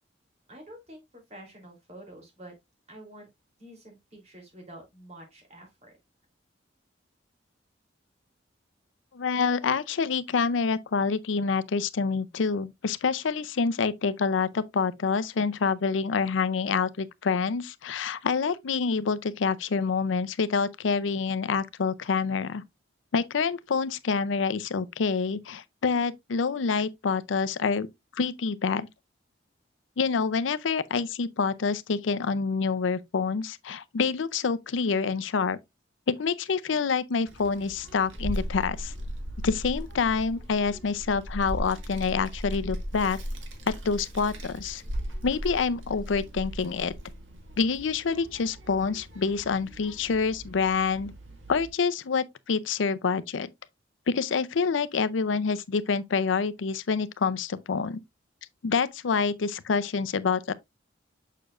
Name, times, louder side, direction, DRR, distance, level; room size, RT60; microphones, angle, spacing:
voice 1, 0.5-2.5 2.9-3.3 3.6-5.9, right 1 dB, 35° right, 3.2 m, -48 dB
voice 2, 9.1-22.6 23.1-27.9 28.2-28.9 30.0-35.6 36.1-38.9 39.4-43.2 43.7-44.8 45.2-46.9 47.6-51.1 51.5-53.5 54.1-58.0 58.6-60.5, left 5 dB, 85° left, 0.5 m, -27 dB
Child speech kid speaking, 37.3-51.7, equal, 85° right, 1.8 m, -38 dB
6.7 x 6.3 x 2.4 m
head